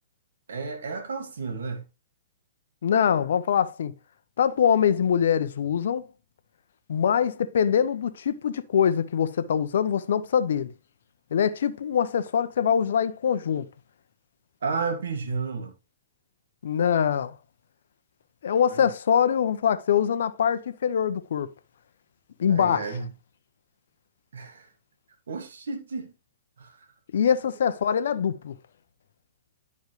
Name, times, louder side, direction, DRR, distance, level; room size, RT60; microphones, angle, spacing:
voice 1, 0.5-1.8 14.6-15.7 18.7-18.9 22.5-23.1 24.3-24.7 25.3-26.1 26.6-26.8, right 4 dB, 75° right, 1.7 m, -32 dB
voice 2, 2.8-3.9 4.4-6.1 6.9-10.7 11.3-13.7 16.6-17.3 18.4-21.5 22.4-22.9 27.1-28.5, left 8 dB, 65° left, 0.8 m, -23 dB
10.5 x 5.3 x 3.2 m
hypercardioid pair, 120°, 0 cm